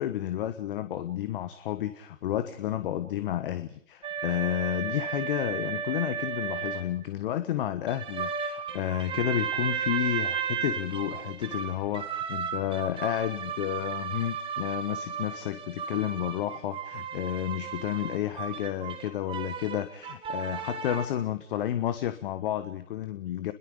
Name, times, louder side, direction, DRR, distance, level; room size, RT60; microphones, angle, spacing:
voice 1, 0.0-23.5, left 12 dB, 40° left, 12 dB, 1.3 m, -31 dB
sound 1, 4.0-6.8 7.9-21.1, right 7 dB, 10° right, 1.8 m, -34 dB
29.5 x 21.5 x 5.2 m, 0.63 s
figure-of-eight pair, 130°, 42 cm